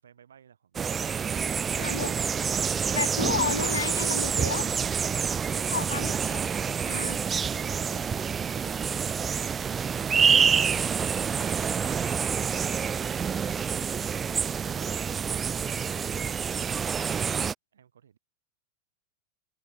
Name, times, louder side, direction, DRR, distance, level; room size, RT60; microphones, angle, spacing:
voice 1, 0.0-1.3 4.6-5.0 17.7-18.2, right 8 dB, 65° right, 5.3 m, -56 dB
sound 1, 0.7-17.5, right 7 dB, 20° right, 0.8 m, -27 dB
voice 2, 1.8-2.2 2.9-4.7 5.7-6.4 6.9-7.2, left 6 dB, 70° left, 0.4 m, -31 dB
figure-of-eight pair, 90°, 0 cm